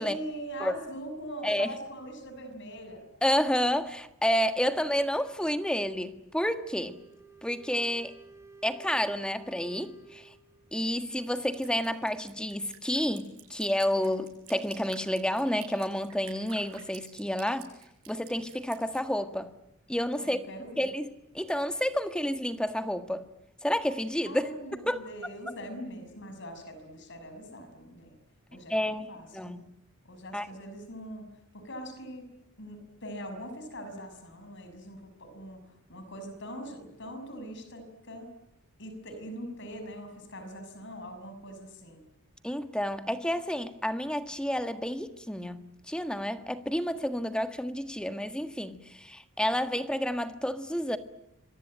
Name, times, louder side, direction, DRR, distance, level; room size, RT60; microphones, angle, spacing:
voice 1, 0.0-3.0 20.2-20.9 24.2-28.1 28.5-29.5 30.1-31.3 31.5-32.3 32.6-38.3 38.8-42.0, equal, 55° left, 6.3 m, -42 dB
voice 2, 1.4-1.8 3.2-7.0 7.4-8.1 8.6-10.3 10.7-17.7 18.1-19.5 19.9-20.4 20.8-21.1 21.3-23.3 23.6-24.5 24.8-25.0 28.7-29.6 30.3-30.5 42.4-51.0, equal, 5° left, 1.6 m, -30 dB
Wind instrument woodwind instrument, 6.4-10.8, right 4 dB, 10° right, 2.6 m, -54 dB
Drip, 11.4-19.0, right 8 dB, 90° right, 7.5 m, -50 dB
26.5 x 24.0 x 8.9 m
head